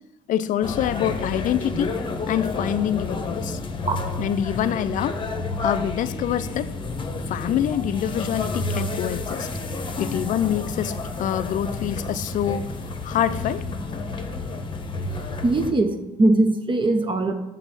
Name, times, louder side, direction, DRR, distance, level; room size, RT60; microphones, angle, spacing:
voice 1, 0.3-2.0 2.3-3.6 4.2-5.2 5.6-6.7 7.3-9.5 10.0-12.7 13.0-13.6, left 10 dB, 55° left, 0.4 m, -25 dB
sound 1, 0.6-15.7, left 3 dB, 30° left, 0.9 m, -30 dB
voice 2, 15.4-17.3, right 2 dB, 30° right, 0.7 m, -21 dB
6.1 x 4.0 x 5.8 m
supercardioid pair, 70°, 16 cm